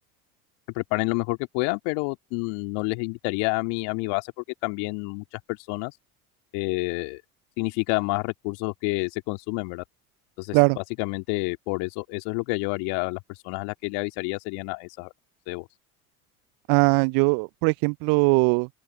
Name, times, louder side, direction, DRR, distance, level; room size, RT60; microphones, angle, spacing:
voice 1, 0.8-5.9 6.5-7.2 7.6-9.8 10.4-13.2 13.4-15.1 15.5-15.7, left 30 dB, 65° left, 2.2 m, -29 dB
voice 2, 16.7-18.7, right 33 dB, 55° right, 0.5 m, -20 dB
open air
hypercardioid pair, 65°, 44 cm